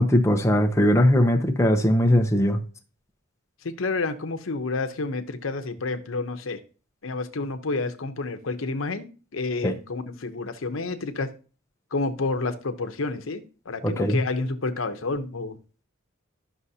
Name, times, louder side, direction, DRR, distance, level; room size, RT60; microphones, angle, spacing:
voice 1, 0.0-2.6 9.6-9.7 13.8-14.2, left 1 dB, 15° left, 0.7 m, -20 dB
voice 2, 3.6-6.6 7.0-9.1 9.3-11.3 11.9-15.6, left 3 dB, 85° left, 0.8 m, -29 dB
11.0 x 6.2 x 2.8 m
head